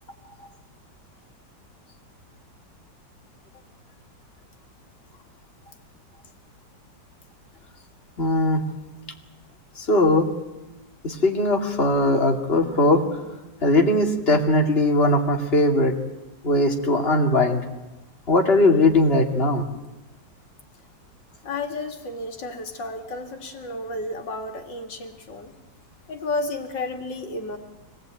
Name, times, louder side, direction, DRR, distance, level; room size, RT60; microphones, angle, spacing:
voice 1, 8.2-8.6 9.8-10.3 11.0-13.1 13.6-15.9 16.4-17.6 18.3-19.6, left 1 dB, 35° left, 3 dB, 2.8 m, -19 dB
voice 2, 21.4-25.5 26.1-27.6, left 2 dB, 80° left, 5 dB, 2.6 m, -32 dB
25.5 x 19.0 x 9.1 m, 1.0 s
omnidirectional pair, 1.9 m